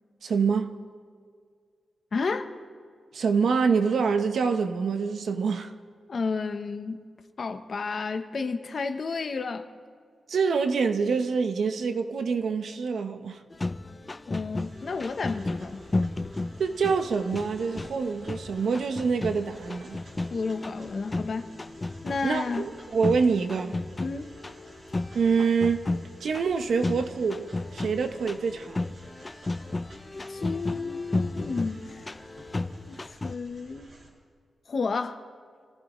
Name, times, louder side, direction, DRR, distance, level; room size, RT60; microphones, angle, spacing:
voice 1, 0.2-0.7 3.1-5.7 10.3-13.4 16.6-20.0 22.2-23.8 25.1-25.9 26.2-28.9, right 5 dB, 70° right, 0.9 m, -26 dB
voice 2, 2.1-2.5 6.1-7.0 7.4-9.7 14.3-15.8 20.3-21.5 22.0-22.7 24.0-24.3 30.3-32.1 32.9-33.9 34.7-35.2, left 4 dB, 50° left, 0.9 m, -31 dB
sound 1, 13.5-33.4, left 2 dB, 25° left, 0.4 m, -34 dB
sound 2, 14.6-34.1, right 1 dB, 55° right, 4.5 m, -53 dB
26.0 x 14.5 x 3.1 m
wide cardioid pair, 125°, 0 cm